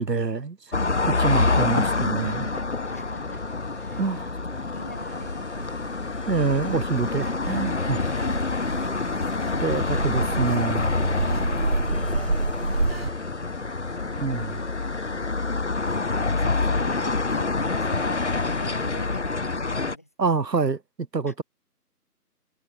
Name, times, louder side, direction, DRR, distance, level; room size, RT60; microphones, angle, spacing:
voice 1, 0.0-2.5 4.0-4.3 6.3-8.0 9.6-10.9 14.2-14.6 20.2-20.8 21.1-21.4, right 4 dB, 80° right, 1.2 m, -26 dB
sound 1, 0.7-20.0, left 3 dB, 45° left, 2.0 m, -27 dB
sound 2, 1.7-19.6, left 2 dB, 80° left, 2.4 m, -42 dB
voice 2, 2.5-3.5 3.8-4.1 4.7-6.1 7.7-9.8 16.3-20.4 21.3-21.4, left 1 dB, 10° left, 1.3 m, -45 dB
sound 3, 4.7-13.1, right 3 dB, 35° right, 1.3 m, -30 dB
figure-of-eight pair, 160°, 49 cm